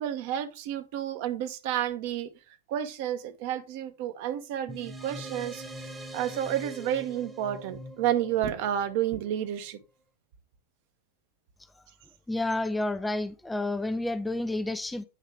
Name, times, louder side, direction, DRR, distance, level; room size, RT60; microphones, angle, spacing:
voice 1, 0.0-2.3 2.7-5.6 6.1-9.8, right 11 dB, 50° right, 1.0 m, -30 dB
sound 1, 4.7-9.5, equal, 15° right, 1.1 m, -43 dB
voice 2, 12.3-15.0, left 2 dB, 5° left, 0.5 m, -30 dB
8.7 x 3.2 x 4.6 m
figure-of-eight pair, 90°, 0 cm